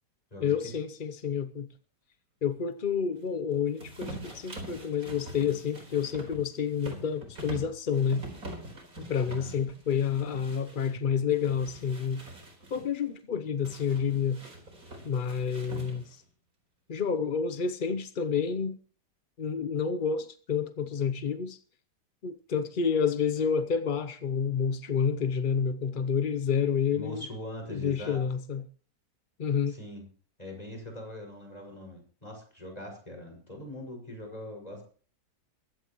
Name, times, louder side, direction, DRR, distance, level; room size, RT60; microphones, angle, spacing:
voice 1, 0.4-1.7 2.4-8.3 9.0-12.2 12.7-14.4 15.0-16.2 16.9-18.8 19.4-21.6 22.2-27.3 27.7-28.6 29.4-29.8, left 6 dB, 50° left, 0.6 m, -29 dB
sound 1, 3.8-10.9 11.3-12.9 13.7-16.2, right 1 dB, 55° right, 4.7 m, -44 dB
voice 2, 27.0-28.2 29.7-30.0 30.4-34.8, left 1 dB, 20° left, 5.9 m, -42 dB
22.5 x 15.5 x 3.1 m
omnidirectional pair, 1.8 m